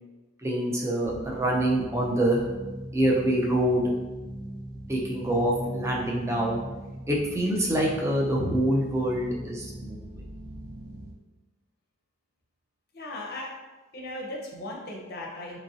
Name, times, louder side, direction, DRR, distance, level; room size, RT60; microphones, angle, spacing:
voice 1, 0.4-2.4 2.9-3.8 4.9-6.6 7.1-10.0, right 1 dB, 15° right, -2 dB, 0.4 m, -25 dB
sound 1, 1.0-11.1, right 1 dB, 45° right, 0.8 m, -40 dB
voice 2, 12.9-13.5 13.9-15.6, left 1 dB, 45° left, -2 dB, 0.6 m, -37 dB
2.9 x 2.5 x 2.6 m, 1.2 s
head